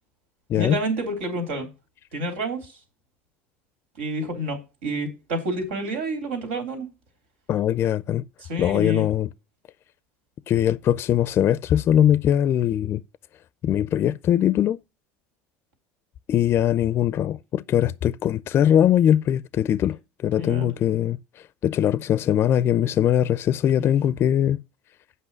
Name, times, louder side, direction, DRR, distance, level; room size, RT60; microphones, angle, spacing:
voice 1, 0.5-1.7 2.1-2.7 4.0-6.9 8.5-9.1 20.4-20.7, right 1 dB, 85° right, 3.4 m, -28 dB
voice 2, 7.5-8.3 8.6-9.3 10.5-13.0 13.6-14.8 16.3-21.2 21.6-24.6, left 10 dB, 40° left, 0.4 m, -21 dB
8.3 x 5.6 x 6.1 m
supercardioid pair, 100°, 6 cm